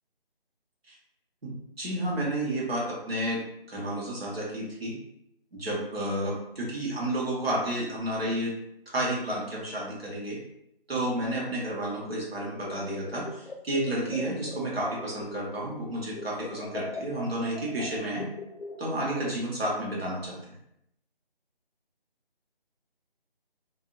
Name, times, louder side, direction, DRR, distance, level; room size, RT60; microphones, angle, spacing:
voice 1, 1.4-3.4 3.7-4.9 5.5-8.5 8.9-10.4 10.9-18.3 18.8-20.5, right 1 dB, 80° right, -4 dB, 1.3 m, -31 dB
sound 1, 12.6-15.8 16.1-19.2, left 3 dB, 75° left, 0.5 m, -41 dB
2.7 x 2.3 x 2.5 m, 0.79 s
figure-of-eight pair, 175°, 30 cm